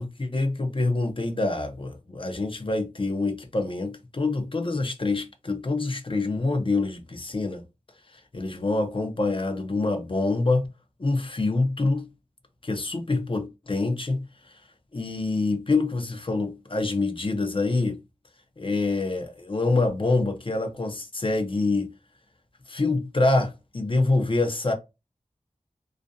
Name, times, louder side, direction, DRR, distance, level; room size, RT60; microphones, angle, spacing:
voice 1, 0.0-7.6 8.3-10.7 11.0-12.1 12.6-14.2 14.9-18.0 18.6-21.9 22.7-24.7, left 3 dB, 40° left, 0.5 m, -26 dB
2.4 x 2.1 x 2.6 m
wide cardioid pair, 65°, 13 cm